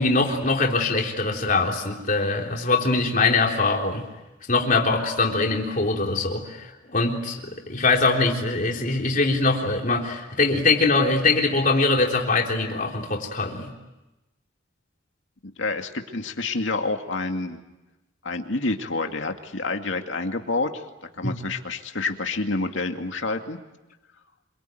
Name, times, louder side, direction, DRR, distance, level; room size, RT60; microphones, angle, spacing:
voice 1, 0.0-4.1 4.5-13.7 21.2-21.4, left 3 dB, 45° left, 0 dB, 3.7 m, -22 dB
voice 2, 15.4-17.6 18.2-20.8 21.2-23.6, left 3 dB, 75° left, 5 dB, 2.2 m, -28 dB
27.0 x 23.5 x 9.3 m, 1.0 s
head